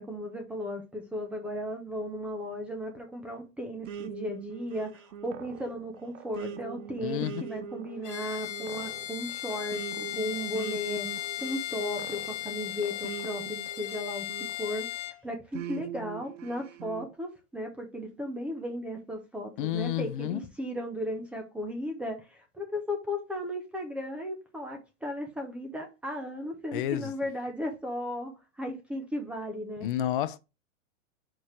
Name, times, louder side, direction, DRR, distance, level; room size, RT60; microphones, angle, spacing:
voice 1, 0.0-11.1 11.4-29.9, left 1 dB, 5° right, 0.4 m, -36 dB
sound 1, 3.9-14.9 15.5-17.1, right 8 dB, 75° right, 0.8 m, -42 dB
voice 2, 7.0-7.4 19.6-20.4 26.7-27.1 29.8-30.4, left 12 dB, 45° left, 0.6 m, -30 dB
Bowed string instrument, 8.0-15.2, left 14 dB, 65° left, 1.0 m, -37 dB
5.0 x 4.5 x 4.4 m
supercardioid pair, 155°, 38 cm